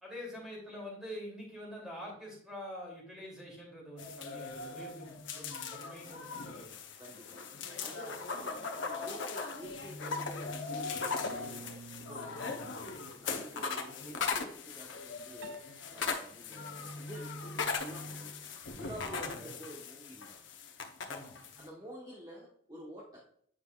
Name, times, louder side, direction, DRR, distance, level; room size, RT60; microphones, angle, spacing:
voice 1, 0.0-6.7 12.3-12.8 19.1-19.5 21.1-21.3, equal, 5° right, -4 dB, 2.8 m, -46 dB
sound 1, 4.0-21.7, left 4 dB, 70° left, 0.9 m, -39 dB
voice 2, 7.0-7.5 7.8-15.6 15.9-18.4 18.7-20.4 21.6-23.2, equal, 20° right, -4 dB, 1.2 m, -49 dB
sound 2, 11.2-13.3 13.5-13.8 14.1-14.6 15.4-15.9, right 5 dB, 65° right, 0.5 m, -52 dB
8.6 x 5.2 x 2.4 m, 0.64 s
head